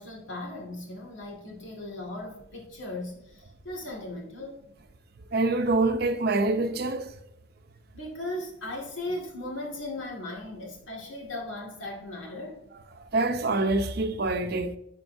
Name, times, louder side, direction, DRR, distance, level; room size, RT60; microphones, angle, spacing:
voice 1, 0.0-4.6 7.9-12.6, left 1 dB, 85° left, 2.0 m, -37 dB
voice 2, 5.3-7.1 13.1-14.8, right 2 dB, 55° right, 0.6 m, -25 dB
11.0 x 4.4 x 2.6 m
head